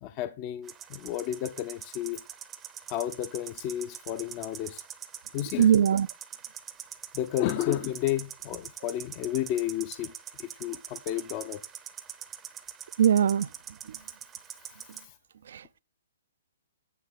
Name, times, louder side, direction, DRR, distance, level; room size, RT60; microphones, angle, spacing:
voice 1, 0.0-2.2 2.9-4.8 5.3-5.7 7.1-10.1 10.4-11.6, left 12 dB, 30° left, 0.6 m, -32 dB
sound 1, 0.6-15.1, right 9 dB, 15° right, 0.7 m, -44 dB
voice 2, 5.6-6.1 13.0-13.5 15.5-15.6, right 9 dB, 50° right, 0.4 m, -21 dB
9.3 x 7.3 x 3.9 m
figure-of-eight pair, 120°, 0 cm